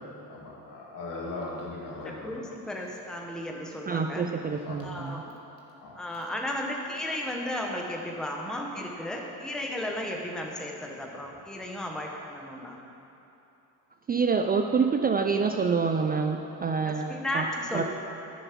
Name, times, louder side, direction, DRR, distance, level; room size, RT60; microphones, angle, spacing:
voice 1, 0.3-2.5 4.6-4.8 5.8-6.0, left 2 dB, 60° left, -3 dB, 2.6 m, -38 dB
voice 2, 2.0-4.3 4.8-5.3 6.0-12.8 16.8-17.8, left 1 dB, ahead, 0 dB, 0.9 m, -34 dB
voice 3, 3.9-5.2 14.1-17.5 17.7-17.8, right 5 dB, 25° right, 5 dB, 0.4 m, -27 dB
11.0 x 7.0 x 6.0 m, 2.9 s
cardioid pair, 110°, 37 cm